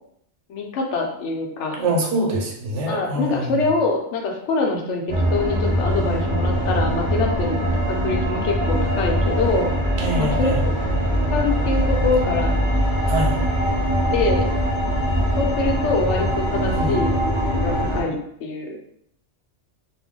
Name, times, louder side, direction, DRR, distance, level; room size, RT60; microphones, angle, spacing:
voice 1, 0.5-1.8 2.9-5.0 5.3-7.6 7.9-9.7 10.2-10.6 11.3-12.6 13.3-13.4 14.1-14.5 15.4-18.8, left 3 dB, 75° left, 2 dB, 0.9 m, -24 dB
voice 2, 1.8-3.7 10.0-10.6 13.1-13.4 16.7-17.1, right 1 dB, 75° right, -1 dB, 1.0 m, -25 dB
sound 1, 5.1-18.0, equal, 25° right, 0.9 m, -22 dB
2.5 x 2.1 x 3.6 m, 0.72 s
omnidirectional pair, 1.2 m